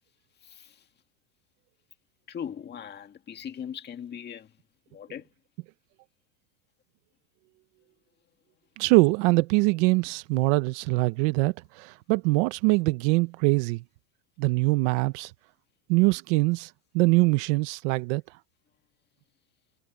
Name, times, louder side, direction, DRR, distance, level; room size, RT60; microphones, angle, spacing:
voice 1, 2.3-4.5 4.9-5.2, left 8 dB, 20° left, 1.9 m, -39 dB
voice 2, 8.8-13.8 14.4-15.3 15.9-18.2, right 24 dB, 50° right, 0.9 m, -23 dB
supercardioid pair, 150°, 45 cm